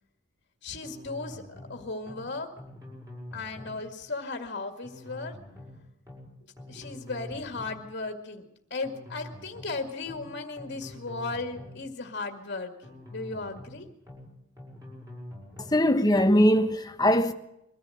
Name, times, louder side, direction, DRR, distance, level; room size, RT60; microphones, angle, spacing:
voice 1, 0.6-1.4 1.7-2.5 3.3-5.4 6.7-8.4 8.7-13.9, left 3 dB, 50° left, 2.1 m, -36 dB
sound 1, 0.8-1.8 2.1-2.3 2.6-3.8 4.8-5.8 6.1-6.3 6.6-7.8 8.8-9.8 10.1-10.3 10.6-11.8 12.8-13.8 14.1-14.3 14.6-15.8, left 1 dB, 15° right, 6.9 m, -45 dB
voice 2, 15.7-17.3, equal, 20° left, 1.2 m, -21 dB
23.0 x 14.5 x 7.9 m
head